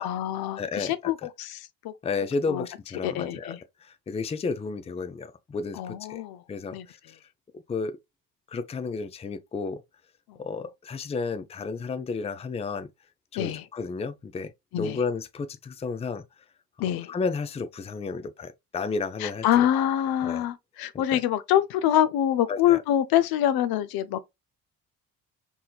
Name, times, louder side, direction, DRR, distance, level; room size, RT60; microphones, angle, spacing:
voice 1, 0.0-1.9 2.5-2.7 3.0-3.6 5.8-6.4 6.7-6.9 13.4-13.6 14.7-15.0 16.8-17.1 19.2-24.2, left 11 dB, 65° left, 0.5 m, -25 dB
voice 2, 0.6-1.1 2.0-6.2 6.5-7.0 7.7-8.0 8.5-9.8 10.4-12.9 13.3-14.5 14.8-16.2 17.1-19.7 20.2-20.4 21.1-21.2 22.5-22.8, left 4 dB, 15° left, 0.4 m, -32 dB
4.1 x 2.7 x 2.2 m
supercardioid pair, 60°, 39 cm